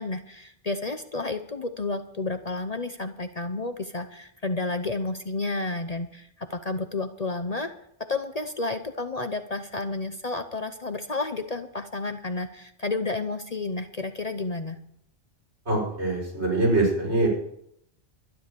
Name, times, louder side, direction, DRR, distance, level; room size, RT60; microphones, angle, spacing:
voice 1, 0.0-7.7 8.1-14.8, left 3 dB, 40° left, 8 dB, 0.8 m, -31 dB
voice 2, 15.7-17.3, right 2 dB, 70° right, -2 dB, 5.5 m, -23 dB
12.5 x 11.0 x 6.8 m, 0.73 s
omnidirectional pair, 1.2 m